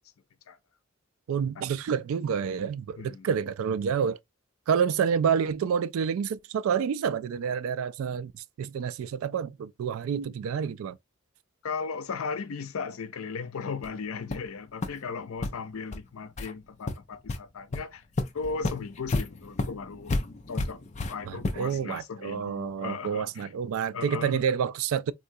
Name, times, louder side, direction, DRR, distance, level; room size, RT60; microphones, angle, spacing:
voice 1, 1.3-4.2 4.7-11.0 21.2-25.1, right 7 dB, 80° right, 0.3 m, -28 dB
voice 2, 3.0-3.3 11.6-18.0 18.3-20.2 20.5-23.5 23.9-24.6, left 5 dB, 90° left, 0.5 m, -37 dB
sound 1, 13.8-13.9 14.3-14.5 14.8-14.9 15.4-15.5 15.9-16.0 16.4-16.5 16.9-17.4 17.7-17.8 18.2-21.8, left 2 dB, 35° left, 0.4 m, -31 dB
3.7 x 2.3 x 2.6 m
head